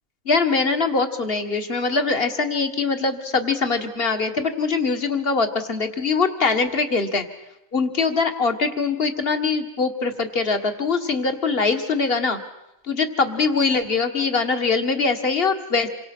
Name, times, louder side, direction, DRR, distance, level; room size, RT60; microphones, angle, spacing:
voice 1, 0.3-7.3 7.7-12.4 12.9-15.9, left 4 dB, 45° left, 7 dB, 2.1 m, -22 dB
27.5 x 24.5 x 6.3 m, 0.90 s
omnidirectional pair, 1.4 m